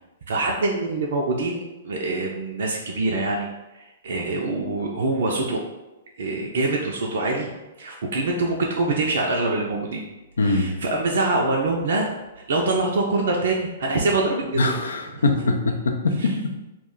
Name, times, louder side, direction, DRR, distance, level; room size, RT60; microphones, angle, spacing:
voice 1, 0.3-3.5 3.7-5.6 6.2-7.5 7.8-10.0 10.4-12.1 12.4-14.8 15.1-15.2, right 2 dB, 65° right, -1 dB, 0.4 m, -24 dB
voice 2, 10.4-10.7 14.6-16.3, left 2 dB, 75° left, 4 dB, 0.4 m, -22 dB
2.3 x 2.1 x 3.6 m, 1.0 s
hypercardioid pair, 115°, 0 cm